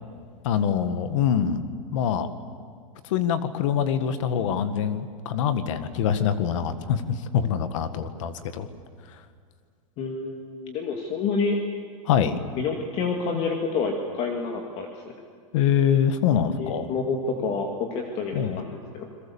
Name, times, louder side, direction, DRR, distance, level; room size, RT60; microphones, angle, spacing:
voice 1, 0.4-1.6 1.9-2.3 3.0-8.7 12.1-12.4 15.5-16.9 18.3-18.6, left 8 dB, 60° left, 11 dB, 1.7 m, -24 dB
voice 2, 10.0-11.6 12.6-14.9 16.6-19.1, left 4 dB, 35° left, 3 dB, 2.1 m, -28 dB
29.0 x 22.0 x 7.2 m, 2.1 s
supercardioid pair, 160°, 18 cm